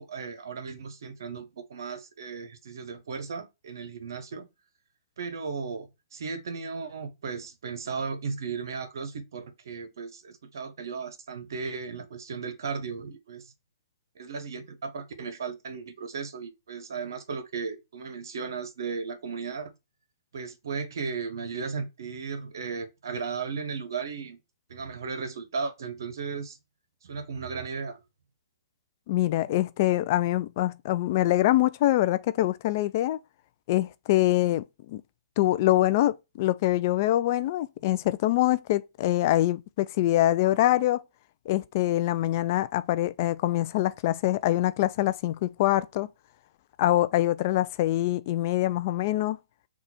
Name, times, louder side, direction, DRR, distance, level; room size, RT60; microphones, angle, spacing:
voice 1, 0.0-4.5 5.2-13.5 14.2-19.7 20.3-24.4 24.7-26.6 27.0-28.0, right 5 dB, 70° right, 0.8 m, -35 dB
voice 2, 29.1-33.2 33.7-35.0 35.4-41.0 41.5-46.1 46.8-49.4, left 15 dB, 45° left, 0.3 m, -24 dB
3.9 x 2.4 x 4.2 m
hypercardioid pair, 125°, 2 cm